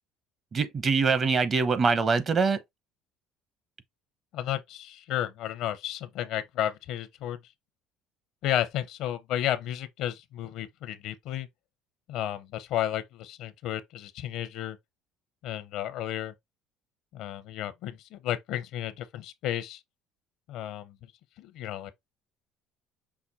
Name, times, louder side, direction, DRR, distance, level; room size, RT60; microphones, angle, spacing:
voice 1, 0.5-2.6, right 4 dB, 35° right, 0.8 m, -24 dB
voice 2, 4.3-7.4 8.4-11.5 12.1-14.8 15.4-16.3 17.1-19.8 20.5-20.9 21.4-21.9, left 12 dB, 70° left, 0.7 m, -32 dB
5.8 x 2.2 x 4.1 m
supercardioid pair, 100°, 0 cm